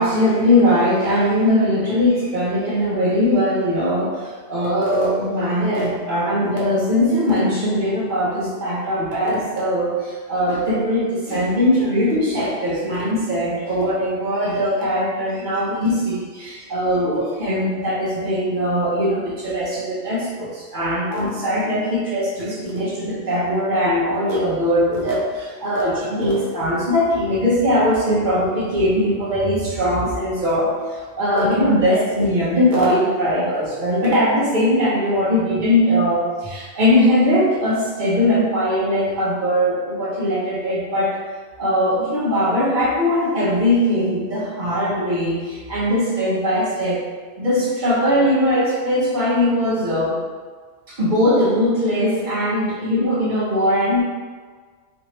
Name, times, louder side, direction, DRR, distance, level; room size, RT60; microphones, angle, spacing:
voice 1, 0.0-41.2 41.6-47.0 47.4-50.2 50.9-54.0, left 1 dB, 50° right, -7 dB, 1.1 m, -20 dB
3.3 x 2.9 x 3.1 m, 1.5 s
omnidirectional pair, 1.1 m